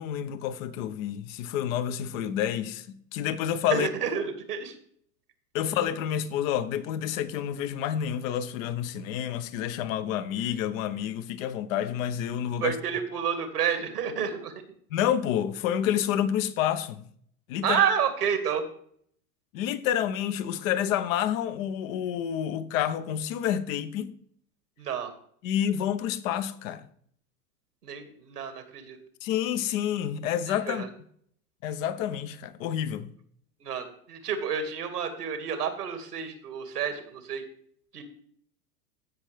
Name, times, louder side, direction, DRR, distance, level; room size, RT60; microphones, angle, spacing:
voice 1, 0.0-3.9 5.5-12.8 14.9-17.0 17.5-17.8 19.5-24.1 25.4-26.9 29.2-30.8 31.6-33.1, left 10 dB, 60° left, 1.1 m, -29 dB
voice 2, 3.7-4.7 12.6-14.5 17.6-18.7 24.8-25.1 27.8-29.0 30.5-30.9 33.6-37.4 37.9-38.0, right 7 dB, 85° right, 2.1 m, -29 dB
16.0 x 5.4 x 3.4 m
hypercardioid pair, 100°, 46 cm